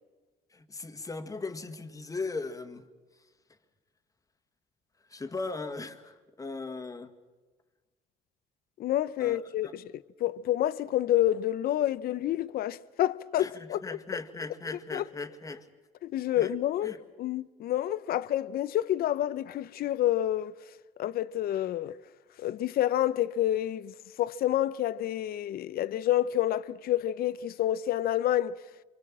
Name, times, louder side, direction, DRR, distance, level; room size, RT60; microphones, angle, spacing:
voice 1, 0.5-2.9 5.1-7.1 9.2-9.7 13.4-15.7 16.4-16.5 16.8-17.0, left 3 dB, 20° left, 1.8 m, -38 dB
voice 2, 8.8-14.0 14.9-15.0 16.0-20.5 21.0-22.0 22.4-28.6, left 12 dB, 65° left, 0.7 m, -28 dB
27.5 x 24.5 x 7.5 m
cardioid pair, 110°, 17 cm